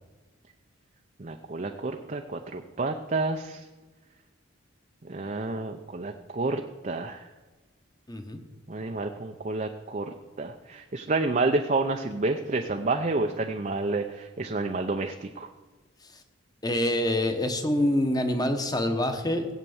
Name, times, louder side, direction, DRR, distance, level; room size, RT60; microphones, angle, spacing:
voice 1, 1.2-3.7 5.0-7.2 8.7-15.5, right 3 dB, 35° right, 4 dB, 0.6 m, -29 dB
voice 2, 8.1-8.4 16.6-19.5, left 1 dB, 20° left, 7 dB, 1.1 m, -26 dB
16.5 x 8.2 x 7.1 m, 1.2 s
head